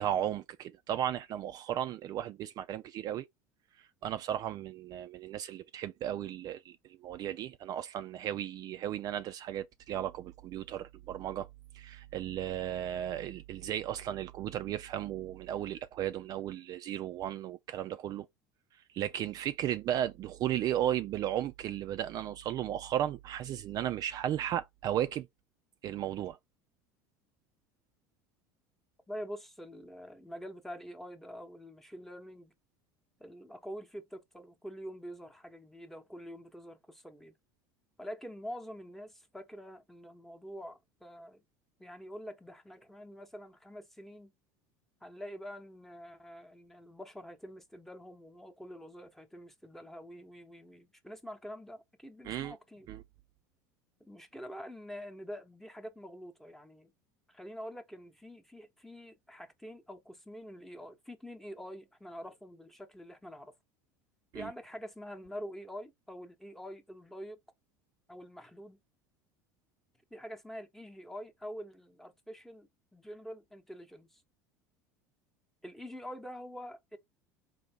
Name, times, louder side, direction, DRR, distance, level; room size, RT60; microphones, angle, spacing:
voice 1, 0.0-3.2 4.0-6.8 7.0-11.5 11.7-18.3 18.9-25.3 25.8-26.4 52.2-52.5 52.9-53.0 64.3-64.5, right 11 dB, 45° right, 0.3 m, -35 dB
voice 2, 29.1-32.5 33.2-37.4 38.0-41.4 41.8-44.3 45.0-52.9 54.0-56.9 57.3-63.5 64.3-67.4 68.1-68.8 70.1-74.2 75.6-77.0, equal, 5° left, 0.9 m, -46 dB
3.8 x 2.7 x 3.4 m
hypercardioid pair, 85°, 9 cm